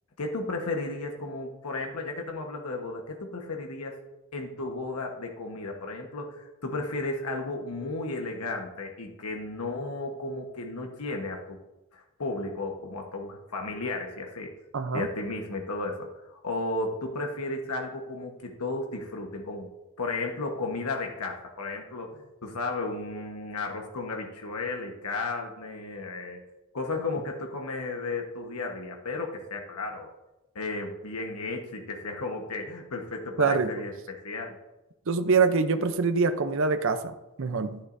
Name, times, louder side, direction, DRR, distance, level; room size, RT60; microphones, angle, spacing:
voice 1, 0.2-4.0 4.3-11.6 11.9-14.5 14.9-19.7 20.0-26.4 26.7-30.1 30.5-34.6, left 3 dB, 85° left, 2 dB, 1.2 m, -34 dB
voice 2, 14.7-15.1 33.4-33.7 35.1-37.8, right 4 dB, 60° right, 9 dB, 0.6 m, -25 dB
11.5 x 10.0 x 2.6 m, 0.98 s
head